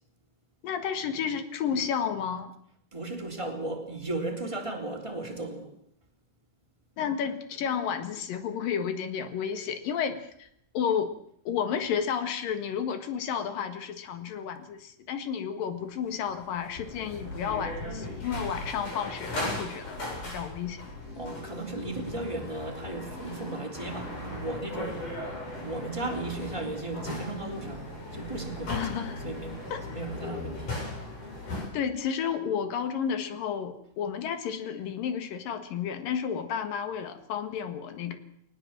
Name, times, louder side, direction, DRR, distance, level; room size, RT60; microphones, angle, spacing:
voice 1, 0.6-2.5 7.0-10.5 10.8-11.1 11.5-20.8 28.7-29.3 29.7-29.8 31.5-38.2, left 7 dB, 85° left, 9 dB, 3.4 m, -32 dB
voice 2, 2.9-5.7 21.2-25.1 25.6-28.9 29.2-30.7, right 2 dB, 10° right, 1 dB, 3.3 m, -36 dB
sound 1, 16.1-31.6, left 1 dB, 65° left, 9.6 m, -38 dB
20.5 x 19.5 x 7.5 m, 0.71 s
omnidirectional pair, 3.8 m